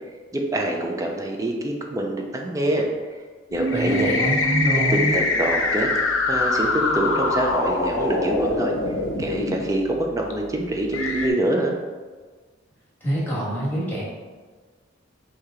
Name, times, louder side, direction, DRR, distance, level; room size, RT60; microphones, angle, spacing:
voice 1, 0.3-2.9 3.5-4.1 4.9-5.9 6.3-8.7 9.2-11.7, right 1 dB, 15° right, 1 dB, 0.4 m, -25 dB
sound 1, 3.5-9.6 10.3-10.4 10.9-11.3, left 2 dB, 90° left, 0.6 m, -23 dB
voice 2, 3.7-5.2 13.0-14.0, right 1 dB, 10° left, -7 dB, 1.4 m, -25 dB
4.8 x 2.7 x 3.6 m, 1.4 s
head